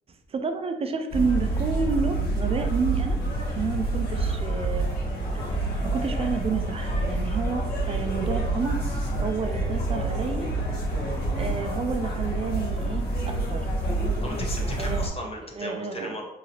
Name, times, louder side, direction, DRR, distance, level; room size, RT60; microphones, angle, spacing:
voice 1, 0.3-3.2 3.6-4.9 5.8-8.9 9.2-10.5 11.3-13.7 14.8-15.0 15.6-16.1, right 5 dB, 30° right, 6 dB, 0.4 m, -30 dB
sound 1, 1.1-15.1, right 2 dB, 55° left, 1.1 m, -27 dB
voice 2, 14.2-16.2, left 1 dB, 30° left, 0 dB, 0.8 m, -35 dB
2.8 x 2.8 x 2.8 m, 0.99 s
cardioid pair, 90°, 20 cm